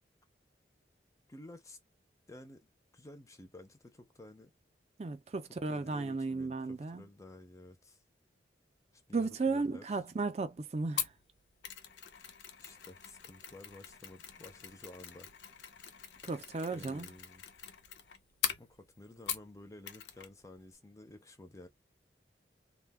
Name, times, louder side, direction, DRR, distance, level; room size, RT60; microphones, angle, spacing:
voice 1, 1.3-1.8 2.3-2.7 2.9-4.5 5.7-8.0 8.9-10.0 12.6-15.3 16.7-17.5 18.6-21.7, left 1 dB, 20° left, 0.5 m, -53 dB
voice 2, 5.0-7.0 9.1-11.1 16.2-17.1, right 3 dB, 35° right, 0.4 m, -35 dB
Mechanisms, 11.0-19.6 19.9-20.3 20.6-20.7, left 9 dB, 80° left, 0.6 m, -42 dB
2.2 x 2.2 x 3.4 m
head